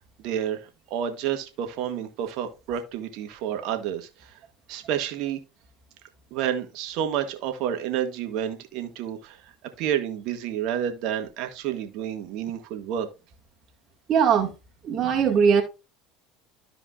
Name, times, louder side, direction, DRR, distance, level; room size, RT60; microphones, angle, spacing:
voice 1, 0.2-4.4 4.7-5.4 6.3-9.4 9.8-13.1, right 9 dB, 65° right, 1.7 m, -30 dB
voice 2, 14.1-14.5 14.8-15.6, right 7 dB, 45° right, 1.9 m, -20 dB
13.5 x 4.9 x 2.4 m
hypercardioid pair, 85°, 0 cm